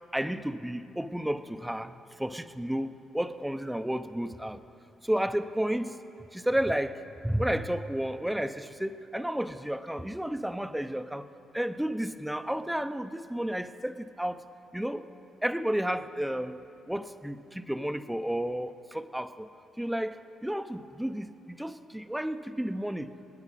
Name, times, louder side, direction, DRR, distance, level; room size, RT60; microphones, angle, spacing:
voice 1, 0.1-1.9 2.2-4.6 5.0-5.9 6.3-6.9 7.2-11.3 11.5-14.4 14.7-15.0 15.4-16.6 16.9-19.5 19.8-20.1 20.4-23.1, equal, 5° right, 10 dB, 0.6 m, -32 dB
24.5 x 9.7 x 4.1 m, 2.6 s
cardioid pair, 90°, 0 cm